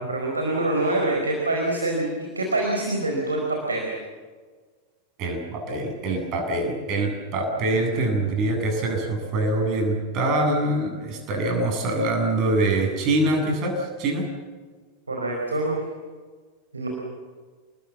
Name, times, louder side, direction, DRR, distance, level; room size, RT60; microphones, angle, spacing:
voice 1, 0.0-3.9 15.1-15.8 16.7-16.9, right 2 dB, 80° right, 0 dB, 4.7 m, -25 dB
voice 2, 5.2-14.2, right 2 dB, 40° right, 3 dB, 7.9 m, -24 dB
29.5 x 20.5 x 7.5 m, 1.5 s
figure-of-eight pair, 90°, 0 cm